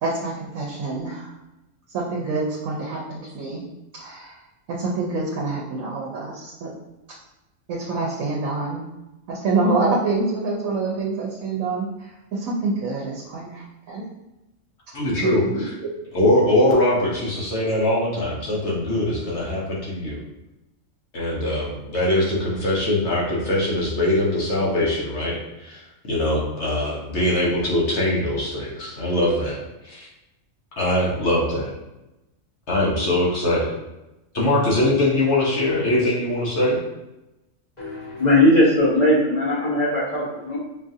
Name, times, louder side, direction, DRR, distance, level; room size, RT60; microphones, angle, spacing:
voice 1, 0.0-1.3 1.9-3.6 3.9-4.3 4.7-6.7 7.7-8.8 9.3-11.8 12.3-14.0 15.2-15.6, right 3 dB, 85° right, -3 dB, 1.1 m, -26 dB
voice 2, 14.9-15.7 16.1-20.2 21.1-29.6 29.8-30.1 30.8-31.7 32.7-33.7 34.3-36.8, left 1 dB, 60° left, -5 dB, 1.1 m, -22 dB
voice 3, 37.8-40.6, left 1 dB, 35° left, -8 dB, 1.3 m, -19 dB
5.4 x 2.4 x 2.6 m, 0.96 s
omnidirectional pair, 1.4 m